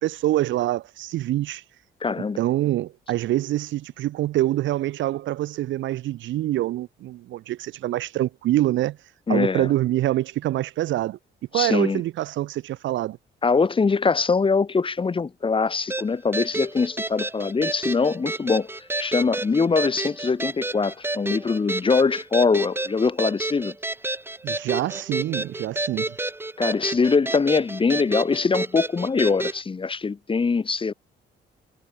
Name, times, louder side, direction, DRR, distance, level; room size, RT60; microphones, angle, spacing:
voice 1, 0.0-1.6 2.4-9.0 9.3-11.2 11.5-13.2 24.4-26.2, right 14 dB, 70° right, 0.5 m, -25 dB
voice 2, 2.0-2.4 9.3-9.7 11.5-12.0 13.4-18.7 19.0-23.7 26.6-30.9, left 4 dB, 25° left, 1.0 m, -23 dB
sound 1, 15.9-29.6, right 2 dB, 10° right, 1.1 m, -30 dB
cardioid pair, 90°, 20 cm